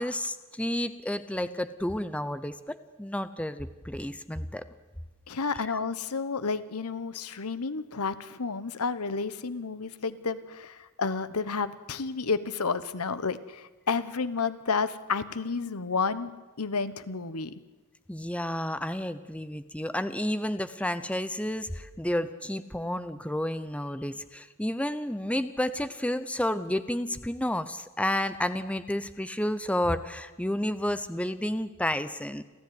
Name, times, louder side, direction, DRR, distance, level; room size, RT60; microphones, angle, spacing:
voice 1, 0.0-4.6 5.6-5.8 18.1-32.4, left 1 dB, 5° left, 12 dB, 0.8 m, -31 dB
voice 2, 5.3-16.3 16.6-17.6, left 4 dB, 80° left, 14 dB, 1.1 m, -31 dB
29.5 x 13.5 x 9.6 m, 1.2 s
head